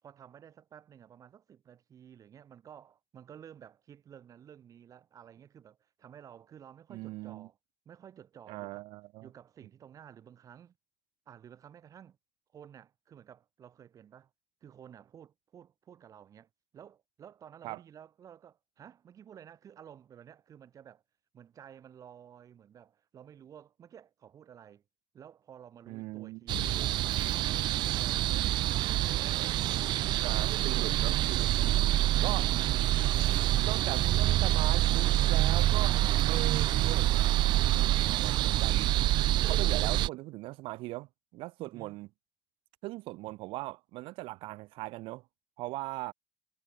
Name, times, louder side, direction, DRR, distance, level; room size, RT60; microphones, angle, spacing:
voice 1, 0.0-7.6 7.9-8.8 9.2-10.8 11.3-12.2 12.5-14.3 14.6-21.0 21.3-24.8 25.1-27.0 27.3-29.9 31.9-33.0 41.6-41.9, right 9 dB, 40° right, 7.5 m, -53 dB
voice 2, 6.9-7.5 8.5-9.3 17.6-17.8 25.9-26.4 30.2-31.5 32.2-32.5 33.6-36.0 36.3-38.9 39.5-42.1 42.8-45.2 45.6-46.1, right 20 dB, 85° right, 1.5 m, -39 dB
Bass drum, 26.5-27.9, left 21 dB, 90° left, 0.7 m, -47 dB
sound 1, 26.5-40.1, right 15 dB, 65° right, 0.5 m, -26 dB
cardioid pair, 150°, 9 cm